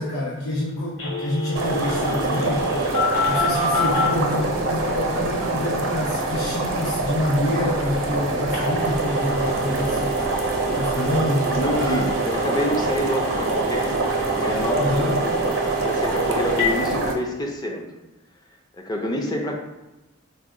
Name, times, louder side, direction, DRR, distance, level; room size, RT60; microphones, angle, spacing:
voice 1, 0.0-2.9 3.3-10.2 10.8-12.1 14.8-15.2, left 1 dB, 90° left, -6 dB, 0.7 m, -27 dB
Telephone, 1.0-4.1 8.5-16.7, equal, 60° left, 1.2 m, -29 dB
sound 1, 1.6-17.1, right 2 dB, 75° right, 0.7 m, -25 dB
voice 2, 11.5-13.9 14.4-14.9 15.2-15.3 15.8-17.9 18.8-19.5, left 1 dB, 20° left, 1 dB, 0.5 m, -27 dB
4.1 x 2.2 x 3.6 m, 1.1 s
head